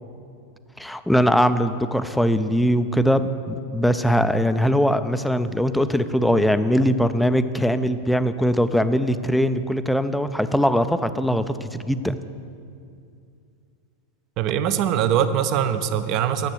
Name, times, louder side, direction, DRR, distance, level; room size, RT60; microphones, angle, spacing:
voice 1, 0.8-12.2, equal, ahead, 11 dB, 0.4 m, -21 dB
voice 2, 14.4-16.5, right 9 dB, 40° right, 11 dB, 0.6 m, -22 dB
10.5 x 7.5 x 6.5 m, 2.5 s
figure-of-eight pair, 90°, 0 cm